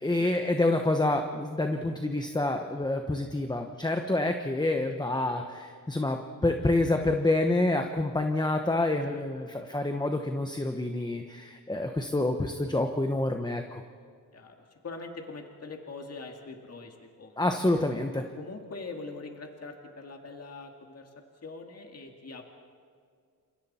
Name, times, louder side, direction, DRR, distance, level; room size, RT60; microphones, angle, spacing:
voice 1, 0.0-13.8 17.4-18.3, left 2 dB, 10° left, 5 dB, 1.0 m, -28 dB
voice 2, 14.8-17.4 18.4-21.1 21.4-22.4, left 3 dB, 45° left, 3 dB, 2.2 m, -42 dB
29.5 x 27.5 x 4.3 m, 2.1 s
wide cardioid pair, 145°, 35 cm